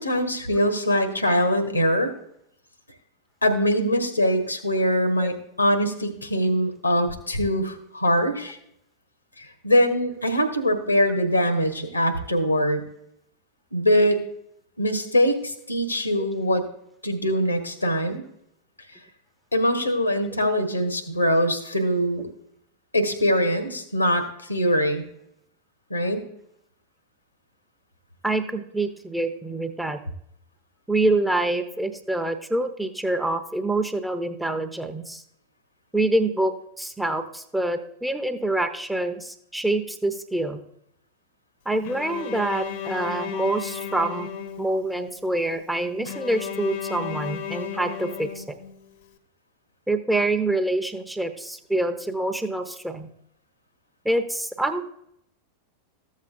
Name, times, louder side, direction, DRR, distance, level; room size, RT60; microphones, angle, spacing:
voice 1, 0.0-2.1 3.4-8.6 9.4-12.8 13.7-14.2 14.8-16.6 17.0-18.2 19.5-22.3 22.9-25.1 25.9-26.3, equal, 85° left, 7 dB, 1.3 m, -23 dB
voice 2, 28.2-30.0 30.9-35.2 35.9-40.6 41.7-44.3 44.6-48.6 49.9-53.1 54.0-54.8, right 2 dB, 5° right, 6 dB, 0.7 m, -26 dB
Bowed string instrument, 41.8-45.1 46.0-49.0, left 8 dB, 50° left, 0.8 m, -34 dB
14.0 x 7.4 x 2.6 m, 0.73 s
figure-of-eight pair, 90°, 0 cm